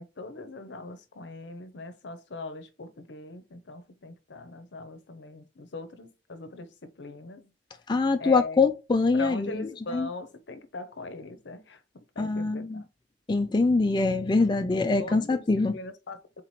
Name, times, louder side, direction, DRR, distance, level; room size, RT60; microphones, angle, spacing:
voice 1, 0.0-7.5 8.2-8.6 9.1-12.8 14.7-15.4 15.7-16.4, left 2 dB, 75° left, 0.7 m, -40 dB
voice 2, 7.9-10.1 12.2-12.8 13.3-15.8, left 3 dB, 25° left, 0.3 m, -24 dB
3.8 x 3.0 x 4.2 m
head